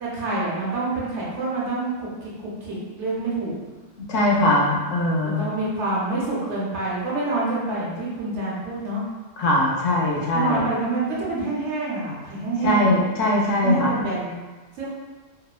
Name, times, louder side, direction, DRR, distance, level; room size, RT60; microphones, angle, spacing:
voice 1, 0.0-3.6 5.2-9.0 10.3-12.9 13.6-14.3 14.8-14.9, right 2 dB, 65° right, -6 dB, 1.0 m, -27 dB
voice 2, 4.1-5.5 9.4-10.6 12.6-13.9, left 1 dB, 80° left, -3 dB, 0.9 m, -21 dB
2.8 x 2.0 x 2.3 m, 1.2 s
omnidirectional pair, 1.3 m